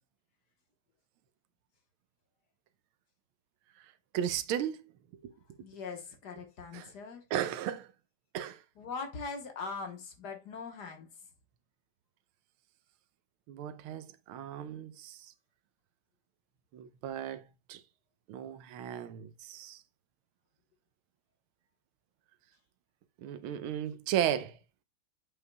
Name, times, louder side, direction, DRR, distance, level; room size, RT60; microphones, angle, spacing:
voice 1, 4.1-4.8 5.2-5.3 6.7-6.9 7.3-7.9 8.3-8.6 13.5-15.2 16.7-17.4 17.7-17.8 18.3-19.8 23.2-24.6, right 10 dB, 85° right, 1.5 m, -35 dB
voice 2, 5.6-7.2 8.8-11.1, left 4 dB, 55° left, 1.6 m, -41 dB
8.0 x 5.6 x 2.2 m
omnidirectional pair, 2.3 m